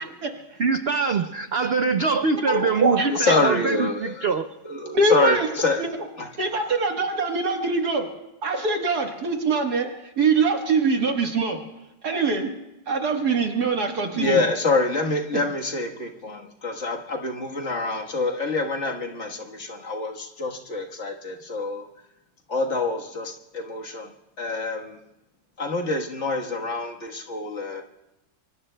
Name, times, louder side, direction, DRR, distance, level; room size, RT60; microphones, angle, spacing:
voice 1, 0.0-0.6 2.5-3.3 4.9-5.5 5.8-5.9 6.4-8.1 8.4-11.6 12.0-12.5 12.9-14.4, right 3 dB, 60° right, 3 dB, 1.9 m, -23 dB
voice 2, 0.6-4.5, right 4 dB, 90° right, 7 dB, 0.5 m, -23 dB
voice 3, 3.1-4.3 4.6-5.8 6.2-6.3 14.1-21.9 22.5-24.1 24.4-25.0 25.6-27.8, left 3 dB, 40° left, 1 dB, 1.6 m, -26 dB
25.5 x 24.0 x 2.2 m, 0.94 s
omnidirectional pair, 2.0 m